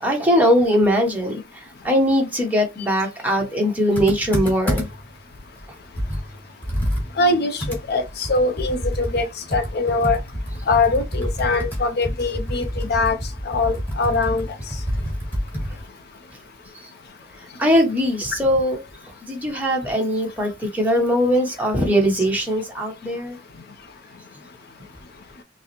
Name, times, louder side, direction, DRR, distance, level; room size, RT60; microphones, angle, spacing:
voice 1, 0.0-1.4 1.8-4.9 17.6-18.8 19.3-23.4, equal, 10° right, 1.0 m, -20 dB
Computer keyboard, 3.9-5.1 5.6-5.7 6.0-15.8, equal, 10° left, 1.8 m, -27 dB
voice 2, 7.2-10.2 10.7-13.2 13.4-14.5, left 3 dB, 55° left, 0.5 m, -22 dB
5.6 x 2.1 x 2.9 m
head